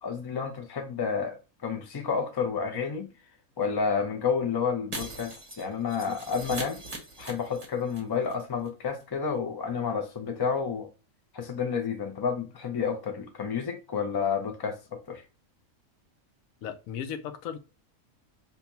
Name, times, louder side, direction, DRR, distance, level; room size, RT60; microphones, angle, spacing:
voice 1, 0.0-1.4 1.6-3.1 3.6-6.8 7.2-10.9 11.3-15.2, left 6 dB, 35° left, 0.3 m, -30 dB
Shatter, 4.9-8.3 8.7-8.8, right 2 dB, 30° right, 0.8 m, -40 dB
voice 2, 16.6-17.6, left 8 dB, 80° left, 1.0 m, -36 dB
2.8 x 2.3 x 4.0 m
omnidirectional pair, 1.4 m